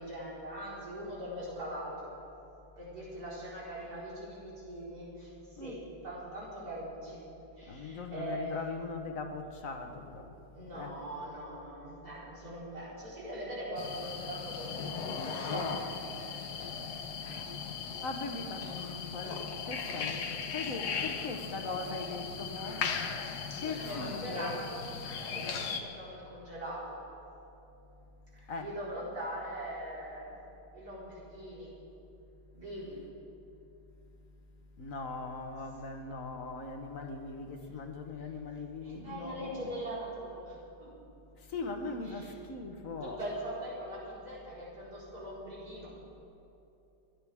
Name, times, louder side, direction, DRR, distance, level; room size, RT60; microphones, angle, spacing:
voice 1, 0.0-2.1 2.8-5.3 5.6-7.2 7.6-8.6 10.5-15.9 20.9-21.0 23.7-25.0 25.2-27.0 28.3-30.4 30.7-31.7 32.5-33.0 38.8-40.9 42.1-42.3 43.0-45.9, right 1 dB, 65° right, -8 dB, 4.8 m, -41 dB
voice 2, 7.7-10.3 10.8-10.9 17.2-22.8 23.6-24.6 28.5-28.7 34.8-39.8 41.4-43.2, left 3 dB, 55° left, 5 dB, 1.4 m, -40 dB
sound 1, 13.8-25.8, left 6 dB, 70° left, 1.5 m, -38 dB
27.0 x 11.0 x 3.5 m, 2.9 s
omnidirectional pair, 1.8 m